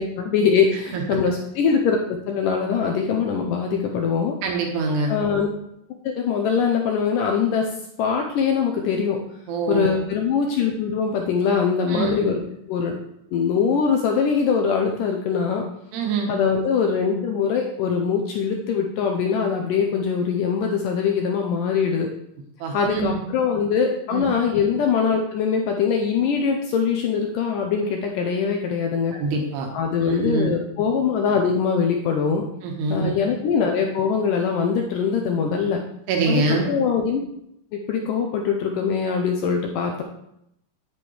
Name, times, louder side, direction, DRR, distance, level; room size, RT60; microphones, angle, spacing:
voice 1, 0.0-4.4 5.1-5.5 6.0-9.2 9.7-12.4 12.7-13.0 13.3-15.7 16.3-22.1 22.7-29.2 29.7-32.5 32.9-35.8 36.3-37.2 37.7-40.0, left 6 dB, 90° left, 2 dB, 1.9 m, -22 dB
voice 2, 4.4-5.1 9.5-9.9 11.9-12.2 15.9-16.3 22.6-23.2 24.1-24.3 29.1-29.7 30.0-30.5 32.6-33.1 36.1-36.7, right 3 dB, 85° right, 1 dB, 3.4 m, -24 dB
10.0 x 8.8 x 3.1 m, 0.79 s
omnidirectional pair, 4.6 m